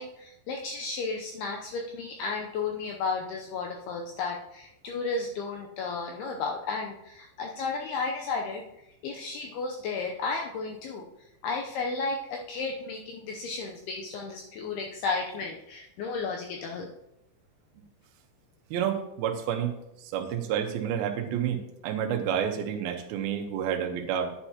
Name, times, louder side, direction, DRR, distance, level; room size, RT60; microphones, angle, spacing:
voice 1, 0.0-8.6 9.0-11.1 11.4-16.9, left 4 dB, 90° left, 1 dB, 2.3 m, -33 dB
voice 2, 18.7-19.7 20.0-24.3, right 9 dB, 75° right, 3 dB, 2.3 m, -29 dB
10.0 x 9.7 x 2.9 m, 0.84 s
omnidirectional pair, 5.4 m